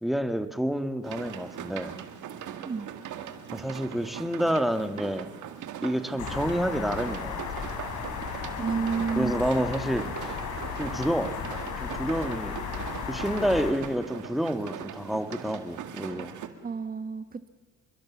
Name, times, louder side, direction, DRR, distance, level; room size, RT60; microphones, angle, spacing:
voice 1, 0.0-2.0 3.5-5.3 5.8-7.4 9.2-10.1 10.8-11.4 11.8-12.6 13.1-16.4, equal, ahead, 8 dB, 1.8 m, -28 dB
sound 1, 1.0-16.5, right 9 dB, 75° right, 2.0 m, -40 dB
sound 2, 6.2-13.7, left 6 dB, 80° left, 4.2 m, -35 dB
voice 2, 8.6-9.3 16.6-17.5, right 5 dB, 30° right, 11 dB, 1.3 m, -30 dB
27.0 x 22.0 x 7.3 m, 1.5 s
cardioid pair, 90°, 30 cm